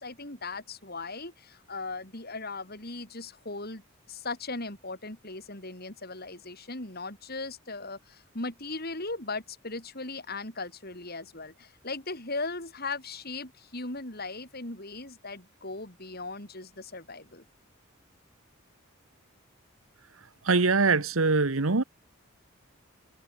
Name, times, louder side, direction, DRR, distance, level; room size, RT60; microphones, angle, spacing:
voice 1, 0.0-17.4, left 3 dB, 50° left, 7.4 m, -38 dB
voice 2, 20.4-21.8, right 4 dB, 85° right, 1.3 m, -23 dB
head